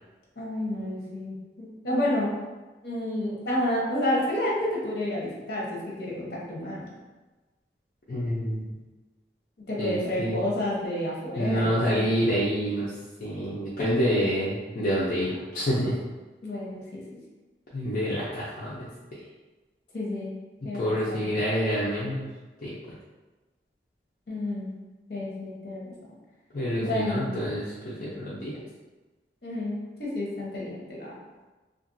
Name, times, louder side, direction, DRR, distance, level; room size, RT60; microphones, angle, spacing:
voice 1, 0.4-2.3 2.8-6.9 9.7-12.1 16.4-17.0 19.9-20.3 20.6-21.3 24.3-24.8 25.1-25.9 26.8-27.4 29.4-31.1, left 1 dB, 65° left, -5 dB, 0.9 m, -30 dB
voice 2, 8.1-8.6 9.8-10.4 11.4-12.9 13.2-15.9 17.7-19.2 20.7-22.2 22.6-22.7 26.5-28.6, equal, 50° left, -9 dB, 0.5 m, -27 dB
2.8 x 2.5 x 2.6 m, 1.2 s
head